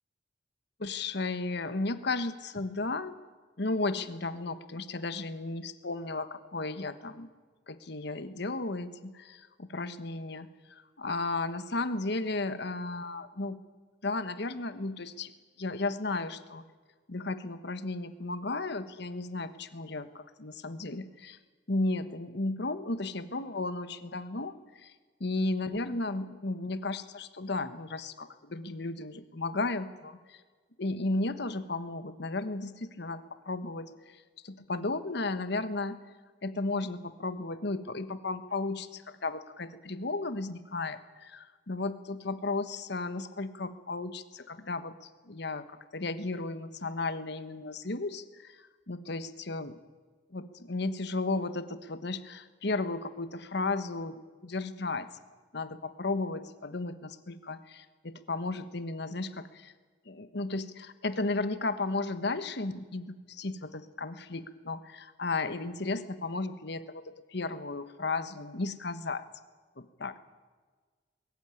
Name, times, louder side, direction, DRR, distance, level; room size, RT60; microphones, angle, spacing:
voice 1, 0.8-3.1 3.6-7.3 7.7-13.6 14.0-15.3 15.6-16.6 17.1-21.4 21.7-24.9 25.2-30.4 30.8-36.0 36.4-44.9 45.3-49.8 50.3-54.1 54.4-55.1 55.5-59.7 60.1-69.3 69.8-70.2, left 3 dB, 65° left, 12 dB, 1.3 m, -34 dB
21.5 x 14.5 x 9.7 m, 1.4 s
head